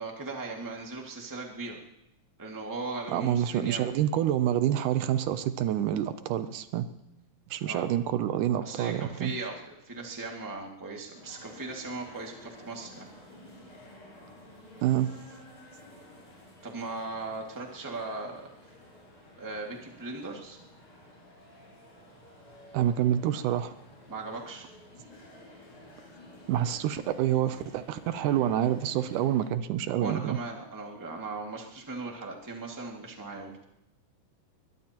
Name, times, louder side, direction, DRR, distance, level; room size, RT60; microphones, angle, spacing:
voice 1, 0.0-1.8 2.4-3.9 7.6-7.9 8.6-13.1 16.6-18.5 19.4-20.6 24.1-24.7 30.0-33.5, right 3 dB, 10° right, 0 dB, 1.4 m, -38 dB
voice 2, 3.1-6.9 7.5-9.3 14.8-15.2 22.7-23.7 26.5-30.4, right 11 dB, 80° right, 11 dB, 2.2 m, -27 dB
sound 1, 11.1-29.5, left 1 dB, 60° left, 7.6 m, -52 dB
21.5 x 21.5 x 2.9 m, 0.84 s
omnidirectional pair, 3.7 m